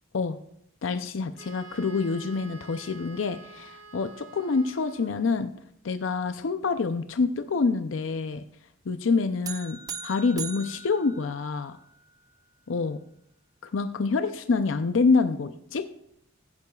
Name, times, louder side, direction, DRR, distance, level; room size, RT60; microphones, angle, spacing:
voice 1, 0.8-5.5 5.8-8.4 8.9-11.8 12.7-13.0 13.6-15.8, left 4 dB, 75° left, 9 dB, 0.5 m, -27 dB
Wind instrument woodwind instrument, 1.4-5.4, right 4 dB, 65° right, 2.4 m, -48 dB
sound 1, 9.4-11.9, right 6 dB, 20° right, 0.5 m, -39 dB
15.0 x 9.7 x 2.3 m, 0.70 s
head